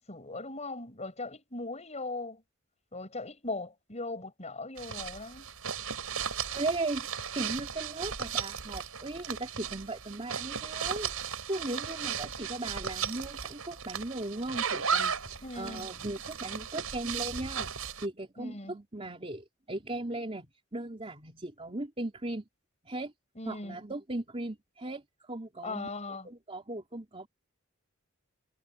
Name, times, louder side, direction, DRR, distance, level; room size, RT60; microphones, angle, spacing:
voice 1, 0.0-2.4 2.9-5.5 15.4-15.9 18.4-18.8 23.4-23.8 25.6-26.3, left 2 dB, 30° left, 7.9 m, -39 dB
sound 1, 4.8-18.1, right 7 dB, 90° right, 4.6 m, -36 dB
voice 2, 6.5-7.1 7.3-17.7 18.0-22.4 22.8-23.1 23.4-25.9 26.2-27.3, right 2 dB, 25° right, 3.5 m, -37 dB
head